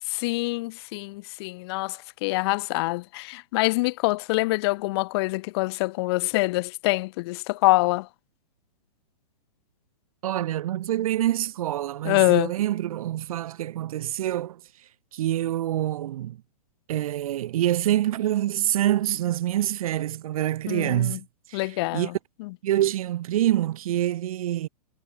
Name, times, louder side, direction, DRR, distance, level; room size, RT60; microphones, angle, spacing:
voice 1, 0.1-8.1 12.0-12.5 20.7-21.2 21.5-22.1 22.4-22.5, left 23 dB, 40° left, 1.3 m, -25 dB
voice 2, 10.2-14.6 15.1-16.4 16.9-21.2 21.5-22.1 22.6-24.7, right 13 dB, 60° right, 0.8 m, -26 dB
hypercardioid pair, 150°, 21 cm